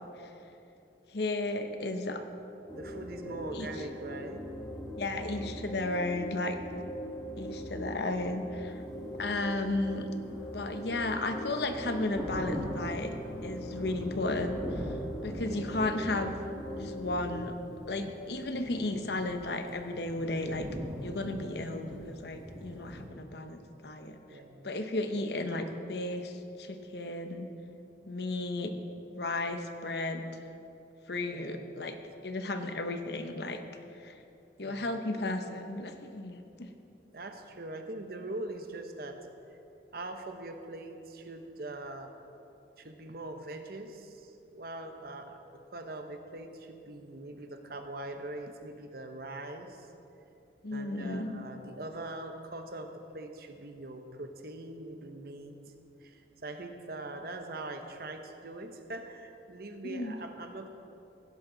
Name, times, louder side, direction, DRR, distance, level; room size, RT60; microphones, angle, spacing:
voice 1, 1.1-2.2 3.5-3.7 5.0-6.5 7.4-8.8 9.2-13.1 13.4-14.6 15.2-16.3 16.7-17.5 17.9-20.7 21.0-27.5 28.0-28.7 29.1-30.3 31.1-31.9 32.2-33.6 34.0-34.1 34.6-36.7 50.6-51.4 59.8-60.1, left 2 dB, 65° left, 7 dB, 0.9 m, -34 dB
sound 1, 2.7-17.5, equal, 15° left, 1.1 m, -41 dB
voice 2, 2.7-4.5 15.5-15.8 24.3-24.7 31.3-31.9 34.6-35.0 37.1-39.2 39.9-42.2 42.8-49.9 50.7-55.6 56.0-60.7, right 2 dB, 55° right, 6 dB, 1.0 m, -42 dB
Thunder, 10.2-23.1, equal, ahead, 2.5 m, -42 dB
16.5 x 10.5 x 4.0 m, 2.8 s
head